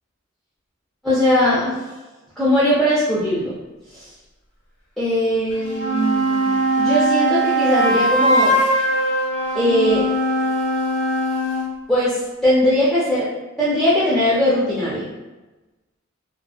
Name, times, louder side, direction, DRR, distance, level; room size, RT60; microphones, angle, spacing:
voice 1, 1.0-1.8 2.4-3.6 3.9-4.1 5.0-8.6 9.5-10.1 11.9-13.3 13.6-15.1, left 1 dB, ahead, -10 dB, 0.4 m, -19 dB
sound 1, 5.5-11.7, right 1 dB, 40° left, 1.3 m, -20 dB
2.9 x 2.0 x 2.3 m, 1.1 s
head